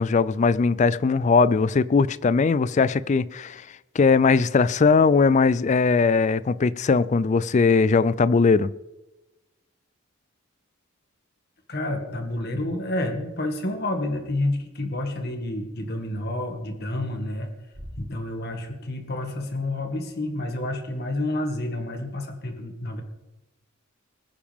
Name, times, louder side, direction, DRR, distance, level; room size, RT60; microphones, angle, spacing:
voice 1, 0.0-3.6 3.9-8.7, left 4 dB, 35° left, 0.3 m, -20 dB
voice 2, 11.7-17.5 18.0-23.0, left 1 dB, 50° left, 2.0 m, -29 dB
sound 1, 12.6-12.7 13.5-13.6 14.3-14.5 16.0-16.4 16.7-17.2 17.5-18.7 19.0-19.1 19.3-19.6, equal, 60° right, 3.0 m, -45 dB
21.0 x 10.0 x 3.6 m
head